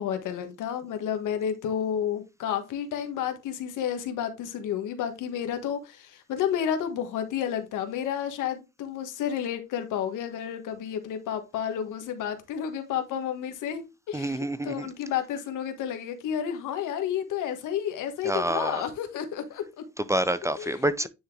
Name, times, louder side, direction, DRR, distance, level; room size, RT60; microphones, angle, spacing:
voice 1, 0.0-19.8 20.6-20.7, left 9 dB, 85° left, 1.5 m, -31 dB
voice 2, 14.1-14.9 18.2-18.8 20.0-21.1, right 1 dB, 10° right, 0.5 m, -27 dB
9.4 x 3.7 x 3.2 m
cardioid pair, 90°, 30 cm